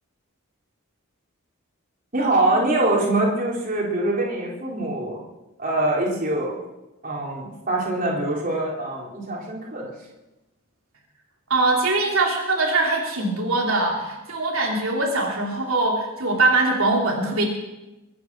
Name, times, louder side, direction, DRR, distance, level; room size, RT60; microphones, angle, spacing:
voice 1, 2.1-5.2 5.6-6.6 7.0-9.9, right 2 dB, 40° right, -3 dB, 4.0 m, -24 dB
voice 2, 11.5-17.5, right 2 dB, 75° right, -1 dB, 2.9 m, -22 dB
23.0 x 9.4 x 6.3 m, 1.0 s
head